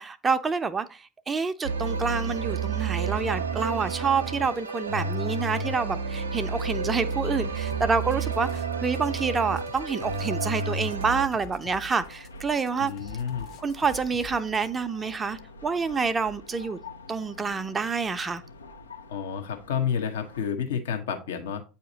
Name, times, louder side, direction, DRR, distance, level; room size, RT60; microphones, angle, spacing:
voice 1, 0.0-12.9 13.6-16.8 17.1-18.4, right 5 dB, 25° right, 0.4 m, -28 dB
sound 1, 1.6-11.2, right 4 dB, 85° right, 0.5 m, -30 dB
sound 2, 4.3-20.5, left 2 dB, 85° left, 0.6 m, -48 dB
sound 3, 7.7-9.0 9.2-14.3, left 4 dB, 50° left, 0.9 m, -47 dB
voice 2, 12.8-13.5 19.1-21.6, left 7 dB, 70° left, 0.9 m, -30 dB
8.5 x 2.9 x 3.8 m
figure-of-eight pair, 70°, 0 cm